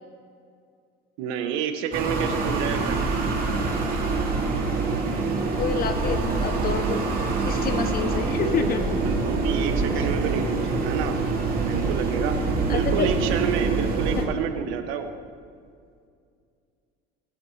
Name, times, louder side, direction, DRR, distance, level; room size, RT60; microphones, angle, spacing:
voice 1, 1.2-3.0 9.0-11.2 11.7-12.4 12.7-15.1, right 8 dB, 75° right, 7 dB, 1.2 m, -29 dB
sound 1, 1.9-14.3, right 3 dB, 45° right, 2.7 m, -25 dB
voice 2, 5.6-7.0 7.4-8.8 10.0-10.1 12.7-13.1 14.1-14.2, left 6 dB, 45° left, 6 dB, 1.4 m, -28 dB
20.0 x 11.0 x 2.8 m, 2.2 s
supercardioid pair, 95°, 21 cm